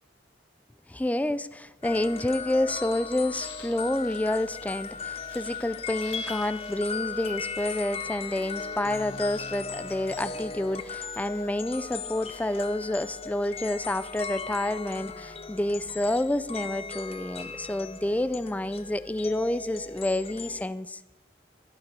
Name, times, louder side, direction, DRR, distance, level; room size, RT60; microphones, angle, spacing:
voice 1, 0.9-21.0, left 1 dB, 10° left, 15 dB, 0.3 m, -29 dB
sound 1, 1.8-20.6, left 5 dB, 35° left, 0.7 m, -37 dB
sound 2, 3.3-8.0 8.3-9.6, left 9 dB, 75° left, 1.0 m, -52 dB
sound 3, 4.4-12.6, right 2 dB, 35° right, 2.9 m, -59 dB
12.5 x 10.5 x 5.4 m, 1.1 s
head